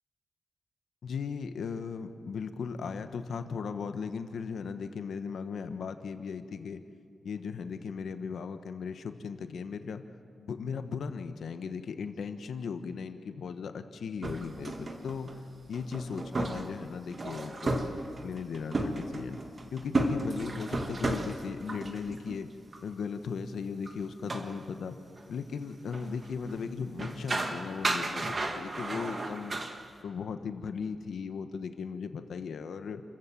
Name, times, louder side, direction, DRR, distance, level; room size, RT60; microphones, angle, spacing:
voice 1, 1.0-6.8 7.2-10.0 10.4-15.3 15.7-17.9 18.2-19.4 19.7-22.5 22.8-25.0 25.3-29.5 30.0-33.0, left 5 dB, 85° left, 8 dB, 1.2 m, -37 dB
sound 1, 14.2-22.4 22.7-22.8 23.9-24.0 24.2-24.5 25.2-25.3 25.9-26.6 27.0-29.8, right 2 dB, 40° right, 1.9 m, -33 dB
29.0 x 14.5 x 7.5 m, 2.2 s
wide cardioid pair, 100°, 0 cm